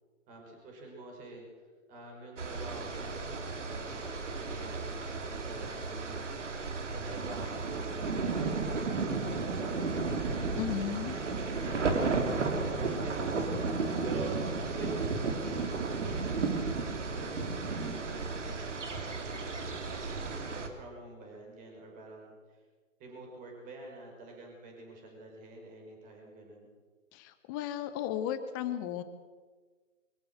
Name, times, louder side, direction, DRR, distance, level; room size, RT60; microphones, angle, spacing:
voice 1, 0.3-10.6 11.1-16.5 17.0-22.6 23.0-26.7, right 2 dB, 20° right, 1 dB, 5.4 m, -48 dB
sound 1, 2.4-20.7, right 4 dB, 65° right, 2.9 m, -33 dB
voice 2, 10.5-11.1 27.1-29.0, left 11 dB, 15° left, 10 dB, 0.8 m, -35 dB
23.5 x 14.0 x 7.9 m, 1.4 s
figure-of-eight pair, 135°, 39 cm